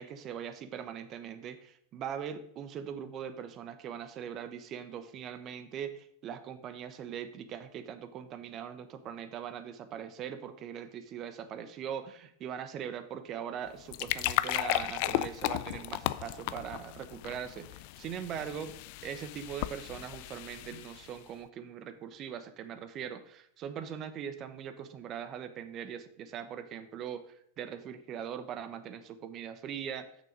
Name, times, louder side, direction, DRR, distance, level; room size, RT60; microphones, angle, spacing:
voice 1, 0.0-18.7 19.0-30.1, right 8 dB, 40° right, 11 dB, 0.9 m, -41 dB
sound 1, 13.6-21.2, left 16 dB, 60° left, 0.4 m, -35 dB
6.8 x 6.3 x 5.1 m, 0.68 s
hypercardioid pair, 115°, 0 cm